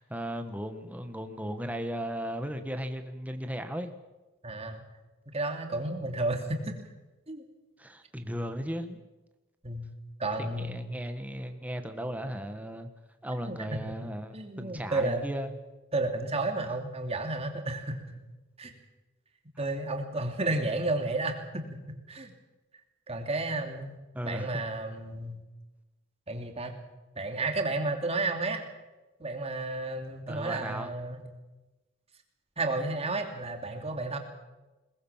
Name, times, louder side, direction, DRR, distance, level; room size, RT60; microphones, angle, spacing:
voice 1, 0.0-3.9 7.8-9.0 10.4-12.9 13.2-15.6 24.1-24.6 30.3-30.9, equal, 5° right, 7 dB, 1.5 m, -36 dB
voice 2, 4.4-4.8 5.3-6.7 7.3-7.4 9.6-9.9 10.2-10.8 13.4-13.8 14.3-15.3 15.9-18.0 18.6-18.7 19.6-22.3 23.1-24.0 24.2-25.4 26.3-26.8 27.2-28.7 29.2-31.2 32.6-34.2, right 2 dB, 30° right, 4 dB, 2.8 m, -32 dB
22.0 x 20.0 x 7.4 m, 1.1 s
head